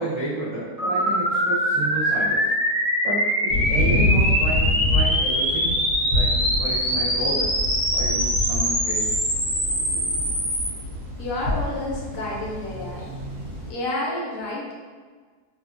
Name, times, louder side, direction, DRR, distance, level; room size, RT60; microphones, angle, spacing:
voice 1, 0.0-5.8 6.0-7.5 7.9-9.2, right 1 dB, 80° right, -11 dB, 0.3 m, -31 dB
sound 1, 0.8-10.7, equal, 35° right, 0.6 m, -23 dB
sound 2, 3.5-13.7, left 1 dB, 60° right, 1.1 m, -27 dB
voice 2, 11.2-13.1 13.7-14.7, left 1 dB, 70° left, -4 dB, 1.0 m, -29 dB
2.8 x 2.4 x 2.4 m, 1.5 s
omnidirectional pair, 1.7 m